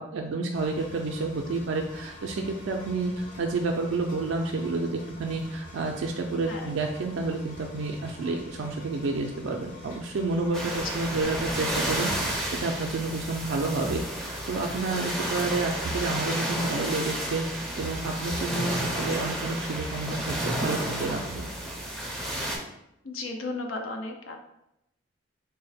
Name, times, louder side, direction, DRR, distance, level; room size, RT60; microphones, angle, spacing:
voice 1, 0.0-21.5, right 3 dB, 75° right, 2 dB, 0.3 m, -30 dB
Engine, 0.5-11.2, left 1 dB, 40° left, 0.7 m, -46 dB
sound 1, 10.5-22.6, right 1 dB, 5° left, 0.4 m, -31 dB
voice 2, 23.0-24.4, left 2 dB, 90° left, 4 dB, 0.6 m, -34 dB
3.7 x 2.1 x 4.1 m, 0.83 s
head